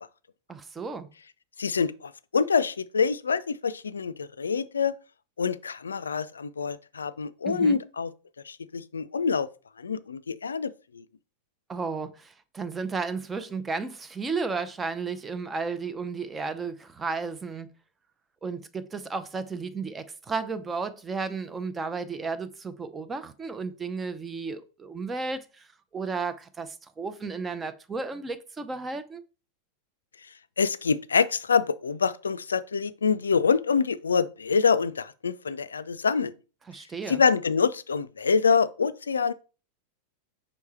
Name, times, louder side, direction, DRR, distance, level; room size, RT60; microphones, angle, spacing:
voice 1, 0.5-1.1 7.4-7.8 11.7-17.7 18.4-25.7 25.9-29.2 36.7-37.2, right 4 dB, 15° right, 0.7 m, -33 dB
voice 2, 1.6-4.9 5.4-8.1 8.4-9.5 9.8-11.0 30.6-36.3 37.1-39.3, left 5 dB, 70° left, 0.4 m, -26 dB
5.5 x 4.7 x 4.2 m
figure-of-eight pair, 90°, 0 cm